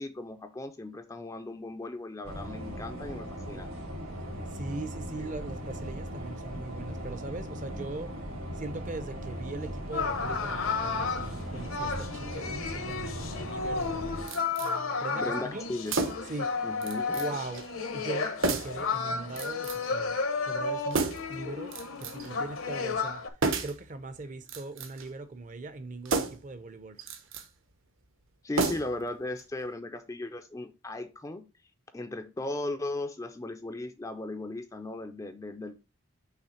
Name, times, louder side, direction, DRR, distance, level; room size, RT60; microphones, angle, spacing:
voice 1, 0.0-3.7 15.2-15.9 16.6-17.2 28.4-31.4 31.9-35.8, left 2 dB, 15° left, 0.4 m, -37 dB
sound 1, 2.2-14.2, equal, 80° right, 2.2 m, -39 dB
voice 2, 4.5-8.1 8.6-14.1 14.6-15.6 16.3-16.6 17.1-17.7 17.9-20.2 20.5-23.2 23.6-27.0, right 2 dB, 35° right, 0.5 m, -40 dB
sound 2, 9.9-23.3, left 4 dB, 70° left, 0.9 m, -33 dB
sound 3, 14.3-14.7 15.9-16.4 16.8-17.3 17.5-17.7 18.4-18.8 19.4-19.9 20.9-21.4 21.7-22.3 23.4-23.8 24.4-25.1 26.0-26.5 27.0-27.5 28.5-29.1 29.4-29.5, right 3 dB, 65° right, 0.8 m, -31 dB
5.7 x 3.2 x 5.6 m
head